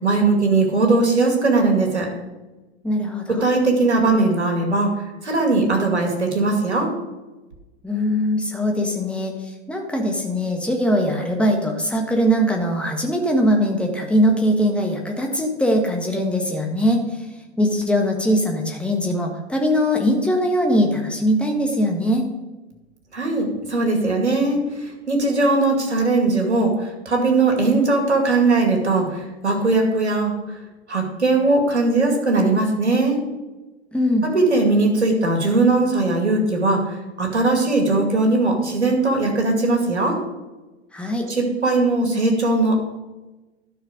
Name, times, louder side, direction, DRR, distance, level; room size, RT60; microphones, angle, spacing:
voice 1, 0.0-2.1 3.4-4.9 5.2-6.9 23.1-30.3 30.9-33.2 34.2-36.9 37.2-40.2 41.3-42.8, right 3 dB, 80° right, 2 dB, 2.4 m, -19 dB
voice 2, 2.8-3.5 7.8-17.3 17.6-22.3 33.9-34.3 40.9-41.3, equal, 5° left, 2 dB, 1.5 m, -21 dB
12.0 x 6.2 x 5.1 m, 1.1 s
figure-of-eight pair, 95°, 34 cm